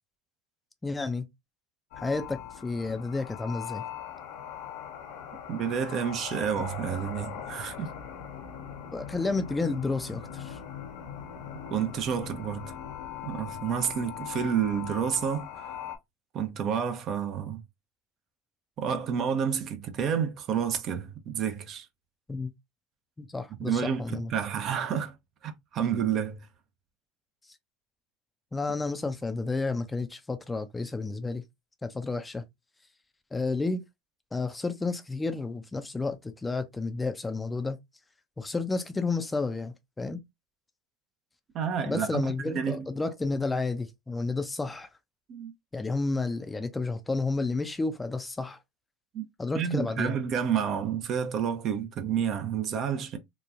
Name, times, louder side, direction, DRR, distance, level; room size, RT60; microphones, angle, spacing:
voice 1, 0.8-1.3 2.0-3.8 6.6-6.7 8.9-10.6 22.3-22.5 23.2-24.3 28.5-31.4 31.8-32.4 33.3-33.8 34.3-37.8 38.4-40.2 41.9-44.9 45.7-48.6 49.4-50.1, left 3 dB, 15° left, 0.5 m, -31 dB
sound 1, 1.9-16.0, left 9 dB, 65° left, 0.6 m, -40 dB
voice 2, 5.5-7.9 11.7-12.7 13.2-15.8 16.3-17.6 18.8-21.9 23.6-25.1 25.4-26.4 41.5-42.9 45.3-45.5 49.1-49.3 49.5-53.2, right 8 dB, 45° right, 0.6 m, -30 dB
3.0 x 2.2 x 2.5 m
hypercardioid pair, 80°, 0 cm